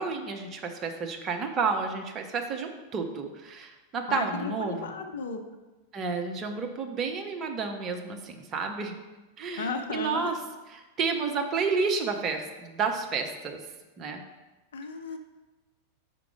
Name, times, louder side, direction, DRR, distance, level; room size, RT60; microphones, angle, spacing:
voice 1, 0.0-4.9 5.9-9.0 9.4-10.4 10.7-13.6 14.0-14.2, right 5 dB, 30° right, 4 dB, 0.7 m, -31 dB
voice 2, 4.1-5.4 9.6-10.3 14.7-15.2, left 4 dB, 65° left, 6 dB, 0.5 m, -34 dB
5.2 x 4.7 x 4.9 m, 1.1 s
figure-of-eight pair, 90°, 0 cm